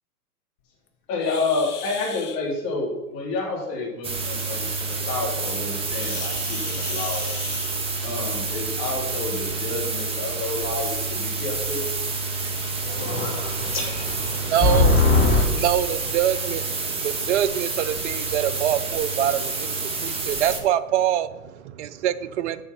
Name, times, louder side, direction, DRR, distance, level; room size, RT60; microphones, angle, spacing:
voice 1, 1.1-7.3 8.0-11.9, left 3 dB, 40° left, -2 dB, 3.3 m, -29 dB
sound 1, 1.2-2.4 5.9-8.2 9.4-9.6 10.1-10.2 10.8-10.9 11.7-11.8 12.3-12.5, left 8 dB, 70° left, 1.2 m, -38 dB
sound 2, 4.0-20.6, right 3 dB, 10° right, 1.2 m, -28 dB
voice 2, 12.8-15.4, left 3 dB, 25° left, -1 dB, 3.0 m, -21 dB
voice 3, 14.3-14.9 15.5-22.6, right 11 dB, 45° right, 13 dB, 0.6 m, -25 dB
7.4 x 6.4 x 5.9 m, 1.1 s
hypercardioid pair, 120°, 47 cm